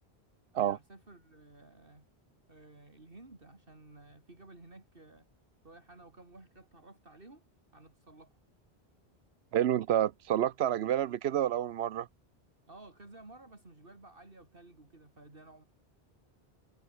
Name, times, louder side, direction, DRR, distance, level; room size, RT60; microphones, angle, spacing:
voice 1, 0.5-2.1 2.5-5.3 5.6-7.4 7.7-8.3 12.7-15.6, right 2 dB, 60° right, 3.8 m, -54 dB
voice 2, 9.5-12.1, right 11 dB, 90° right, 0.9 m, -29 dB
omnidirectional pair, 1.1 m